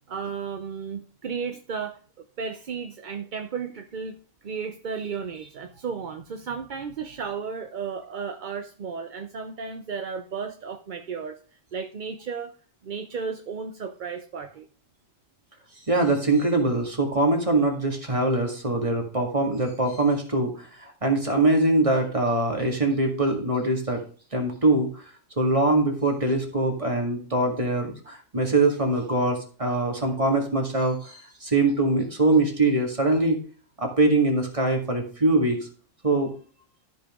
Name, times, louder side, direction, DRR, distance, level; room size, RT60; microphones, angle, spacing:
voice 1, 0.1-2.0 2.4-4.2 4.4-11.4 11.7-12.5 12.8-14.7, right 6 dB, 50° right, 6 dB, 0.7 m, -34 dB
voice 2, 15.9-24.0 24.3-25.0 25.4-33.4 33.8-35.6 36.0-36.3, right 2 dB, 25° right, 2 dB, 2.0 m, -23 dB
13.0 x 5.6 x 3.6 m, 0.40 s
omnidirectional pair, 1.4 m